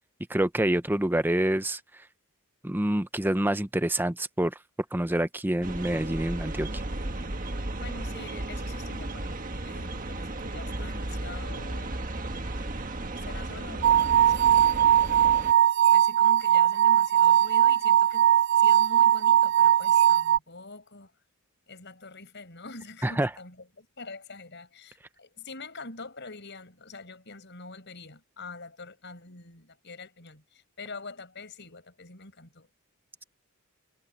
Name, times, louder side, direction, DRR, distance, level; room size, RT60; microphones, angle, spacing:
voice 1, 0.3-1.8 2.6-4.5 4.9-6.8 23.0-23.3, right 1 dB, 10° right, 0.7 m, -27 dB
sound 1, 5.6-15.5, right 2 dB, 40° right, 1.5 m, -34 dB
voice 2, 7.5-12.0 13.2-15.4 15.9-21.1 21.7-32.7, left 3 dB, 55° left, 6.7 m, -45 dB
sound 2, 13.8-20.4, right 11 dB, 55° right, 0.3 m, -20 dB
head